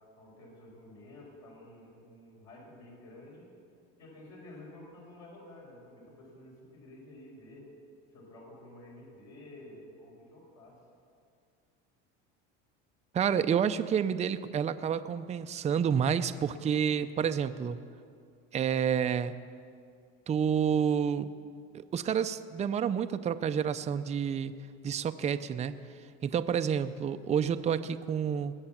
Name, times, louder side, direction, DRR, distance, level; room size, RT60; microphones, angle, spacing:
voice 1, 0.2-3.5 4.0-7.7 8.1-10.8, left 1 dB, 60° left, -4 dB, 5.0 m, -51 dB
voice 2, 13.1-17.8 18.5-19.4 20.3-21.3 21.7-24.5 24.8-25.7 26.2-28.5, right 8 dB, 25° right, 10 dB, 0.5 m, -29 dB
20.0 x 8.0 x 7.2 m, 2.3 s
cardioid pair, 125°, 30 cm